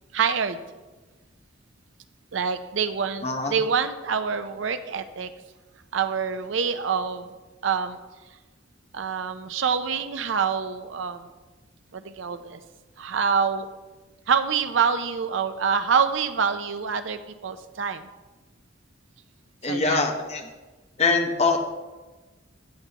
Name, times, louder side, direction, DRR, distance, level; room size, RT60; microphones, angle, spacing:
voice 1, 0.1-0.6 2.3-5.3 5.9-7.2 7.6-8.0 8.9-11.3 11.9-12.6 13.0-13.7 14.3-18.1 19.7-20.0, right 6 dB, 70° right, 10 dB, 0.5 m, -26 dB
voice 2, 3.2-3.5 19.6-20.5 21.0-21.6, left 4 dB, 35° left, 4 dB, 0.9 m, -23 dB
14.0 x 6.8 x 2.9 m, 1.2 s
head